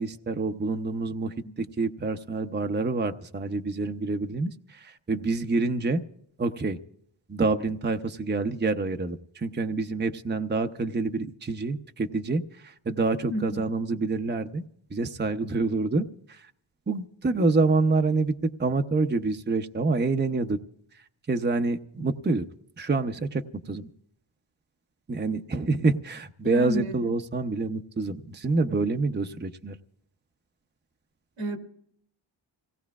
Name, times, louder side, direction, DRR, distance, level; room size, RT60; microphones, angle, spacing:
voice 1, 0.0-6.0 6.4-6.8 7.3-14.6 14.9-16.5 16.9-20.6 20.9-22.5 22.8-23.9 25.1-29.8, right 3 dB, 20° right, 6 dB, 0.8 m, -27 dB
voice 2, 13.3-13.6 26.4-27.1 31.4-31.6, equal, 90° right, 3 dB, 2.7 m, -32 dB
26.5 x 17.5 x 2.4 m, 0.66 s
cardioid pair, 75°, 47 cm